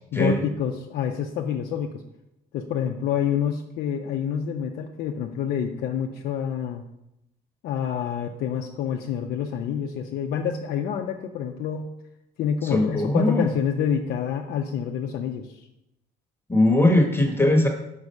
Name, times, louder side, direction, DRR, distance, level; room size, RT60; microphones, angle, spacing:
voice 1, 0.1-2.0 2.5-6.8 7.6-11.9 12.4-15.7, left 8 dB, 70° left, 2 dB, 0.6 m, -27 dB
voice 2, 12.6-13.5 16.5-17.7, left 1 dB, 15° left, 2 dB, 1.1 m, -20 dB
5.4 x 4.7 x 5.3 m, 0.85 s
cardioid pair, 110°, 17 cm